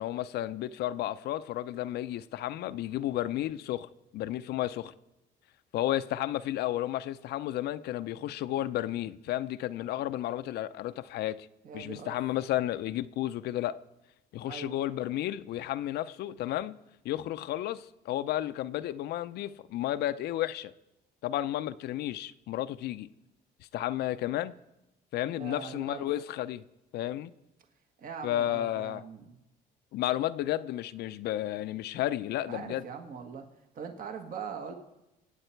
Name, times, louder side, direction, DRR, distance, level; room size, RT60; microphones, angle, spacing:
voice 1, 0.0-4.9 5.7-11.5 11.7-13.8 14.3-16.8 17.0-20.7 21.2-23.1 23.7-24.5 25.1-26.6 26.9-27.3 28.2-29.0 29.9-32.8, left 13 dB, 75° left, 0.6 m, -32 dB
voice 2, 11.6-12.2 14.4-14.7 25.3-26.1 28.0-29.4 32.5-33.5 33.7-34.7, right 6 dB, 55° right, 1.6 m, -41 dB
24.5 x 8.8 x 4.5 m
cardioid pair, 110°, 17 cm